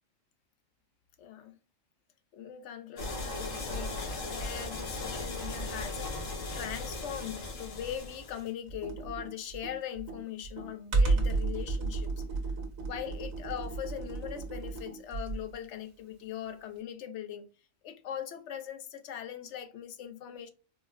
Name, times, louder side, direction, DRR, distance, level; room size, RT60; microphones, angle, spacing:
voice 1, 1.2-1.6 2.3-12.2 12.9-17.5 17.8-20.5, left 9 dB, 70° left, 0.8 m, -41 dB
sound 1, 3.0-8.5, left 2 dB, 85° left, 1.5 m, -37 dB
Computer keyboard, 8.7-15.5, right 3 dB, 80° right, 1.5 m, -32 dB
4.6 x 2.1 x 2.4 m
omnidirectional pair, 1.4 m